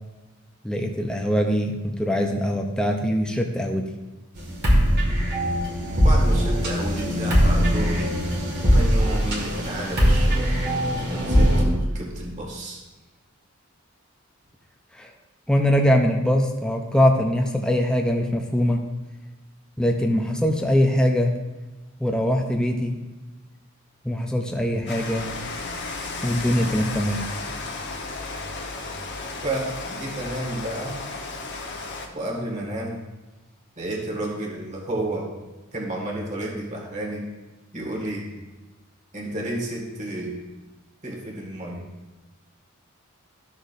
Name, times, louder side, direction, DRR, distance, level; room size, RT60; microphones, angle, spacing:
voice 1, 0.6-3.9 14.9-15.1 15.5-18.9 19.8-21.3 22.0-23.0 24.0-25.3 26.2-27.2, equal, 5° left, 2 dB, 0.6 m, -22 dB
sound 1, 4.4-11.6, equal, 50° right, 2.0 m, -21 dB
voice 2, 6.0-10.6 11.1-12.8 29.4-31.0 32.1-33.0 33.8-35.3 35.7-37.3 37.7-38.3 39.1-40.4 41.0-41.8, right 1 dB, 35° right, -1 dB, 1.8 m, -31 dB
Rain, 24.9-32.1, left 3 dB, 55° left, 1.1 m, -34 dB
13.0 x 6.4 x 2.6 m, 1.2 s
head